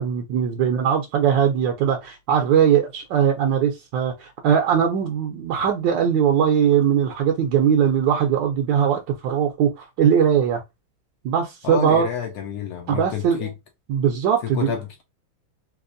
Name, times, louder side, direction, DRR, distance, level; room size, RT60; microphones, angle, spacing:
voice 1, 0.0-10.6 11.2-12.1 12.9-13.5 13.9-14.8, right 8 dB, 70° right, 1.1 m, -20 dB
voice 2, 11.6-13.5 14.4-15.0, left 8 dB, 85° left, 0.8 m, -29 dB
3.4 x 2.9 x 2.5 m
omnidirectional pair, 2.4 m